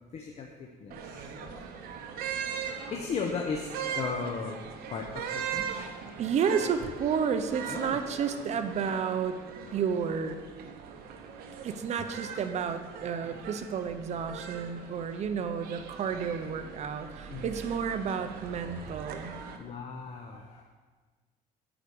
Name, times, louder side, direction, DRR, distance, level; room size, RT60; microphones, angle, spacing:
voice 1, 0.1-1.6 2.9-3.7 3.9-4.6 4.9-6.2 7.7-8.0 17.3-17.5 19.6-20.6, left 5 dB, 40° left, 2 dB, 0.8 m, -36 dB
sound 1, 0.9-19.6, right 7 dB, 70° right, 0.9 m, -40 dB
voice 2, 6.2-9.4 9.7-10.4 11.6-19.4, right 6 dB, 45° right, 8 dB, 0.7 m, -31 dB
8.9 x 4.9 x 6.9 m, 1.4 s
cardioid pair, 135°, 16 cm